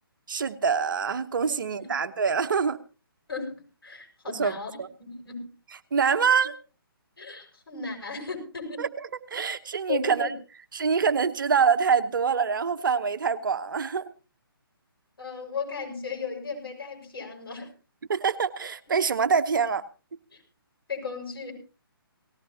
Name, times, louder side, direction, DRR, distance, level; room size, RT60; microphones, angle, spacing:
voice 1, 0.3-2.8 4.3-4.9 5.9-6.6 8.8-8.9 9.3-10.3 10.7-14.0 18.1-19.8, right 6 dB, 55° right, 11 dB, 1.0 m, -25 dB
voice 2, 1.5-1.9 3.3-5.5 7.2-8.9 9.9-10.3 15.2-17.7 20.3-20.4 20.9-21.5, left 5 dB, 65° left, 1 dB, 7.0 m, -36 dB
18.5 x 17.0 x 2.9 m, 0.34 s
figure-of-eight pair, 140°, 13 cm